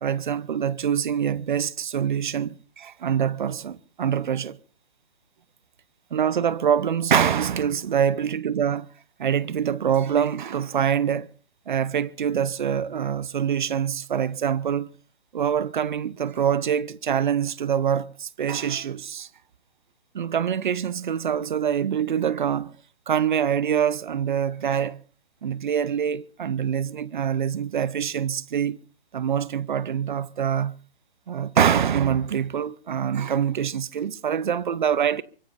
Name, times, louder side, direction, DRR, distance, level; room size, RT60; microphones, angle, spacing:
voice 1, 0.0-4.6 6.1-8.9 9.2-11.3 11.7-14.9 15.3-19.3 20.1-22.7 23.1-25.0 25.4-28.8 29.1-30.8 31.3-35.2, right 8 dB, 55° right, 0.8 m, -25 dB
24.5 x 21.0 x 2.6 m
figure-of-eight pair, 145°, 30 cm